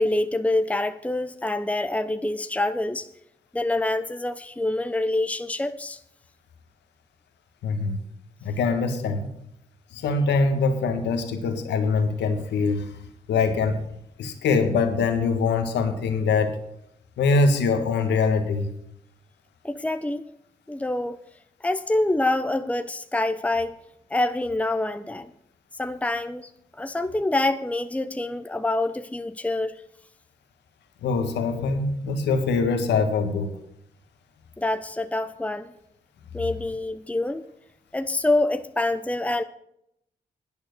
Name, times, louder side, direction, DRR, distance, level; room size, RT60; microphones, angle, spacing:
voice 1, 0.0-3.1 3.5-6.0 19.6-20.2 20.7-21.2 21.6-23.7 24.1-25.3 25.8-29.7 34.6-35.7 36.3-37.4 37.9-39.4, left 2 dB, 10° left, 0.8 m, -26 dB
voice 2, 7.6-8.0 8.4-9.3 9.9-12.9 13.3-13.8 14.2-16.5 17.2-18.7 31.0-33.5, left 4 dB, 90° left, 1.5 m, -23 dB
11.0 x 8.9 x 6.6 m
supercardioid pair, 45°, 17 cm